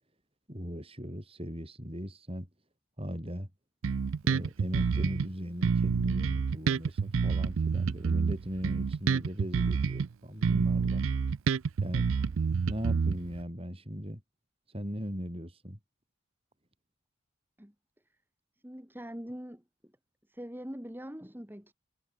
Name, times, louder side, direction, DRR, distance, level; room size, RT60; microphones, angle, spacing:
voice 1, 0.5-2.5 3.0-3.5 4.2-11.0 11.8-12.1 12.7-14.2 14.7-15.8, equal, 30° right, 7.9 m, -38 dB
Bass guitar, 3.8-5.3 5.6-10.1 10.4-13.4, right 5 dB, 75° right, 0.4 m, -28 dB
voice 2, 18.6-19.6 20.3-21.7, equal, 10° right, 2.2 m, -42 dB
head